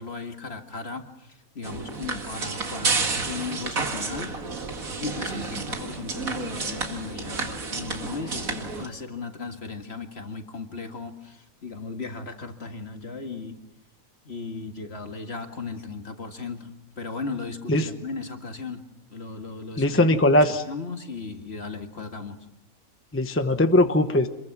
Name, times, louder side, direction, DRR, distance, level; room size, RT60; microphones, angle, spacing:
voice 1, 0.0-4.3 4.7-13.6 14.3-18.8 19.1-22.5, left 4 dB, 45° left, 5 dB, 2.0 m, -36 dB
sound 1, 1.6-8.9, right 4 dB, 70° right, 2.4 m, -30 dB
voice 2, 19.8-20.5 23.1-24.3, left 1 dB, 10° left, 8 dB, 0.9 m, -20 dB
27.0 x 22.5 x 6.1 m, 0.86 s
omnidirectional pair, 1.5 m